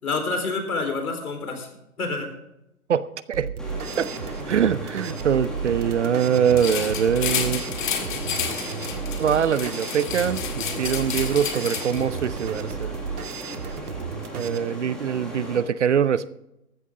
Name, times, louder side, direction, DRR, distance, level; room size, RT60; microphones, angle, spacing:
voice 1, 0.0-1.7 2.0-2.3, left 3 dB, 70° left, 5 dB, 4.2 m, -27 dB
voice 2, 2.9-3.5 4.0-4.1 4.5-7.6 9.2-13.0 14.3-16.3, right 8 dB, 50° right, 17 dB, 0.6 m, -23 dB
sound 1, 3.3-14.6, right 6 dB, 75° right, 1.7 m, -34 dB
sound 2, 3.6-15.6, equal, ahead, 1.8 m, -36 dB
sound 3, 6.6-12.2, left 7 dB, 35° left, 1.8 m, -31 dB
14.5 x 13.0 x 3.7 m, 0.86 s
hypercardioid pair, 170°, 45 cm